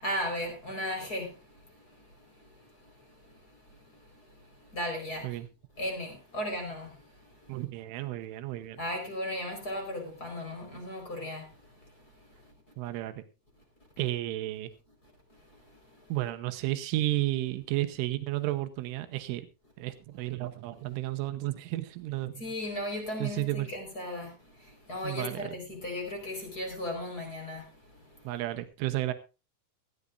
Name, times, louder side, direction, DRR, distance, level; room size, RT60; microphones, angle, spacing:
voice 1, 0.0-1.3 4.7-5.3 5.8-6.9 8.8-11.4 22.4-24.3 24.9-27.6, left 1 dB, 20° left, 4.4 m, -35 dB
voice 2, 7.5-8.8 12.8-13.1 14.0-14.7 16.1-19.5 19.8-22.3 23.2-23.7 25.0-25.5 28.2-29.1, right 16 dB, 90° right, 3.5 m, -32 dB
18.0 x 13.5 x 2.5 m
omnidirectional pair, 5.6 m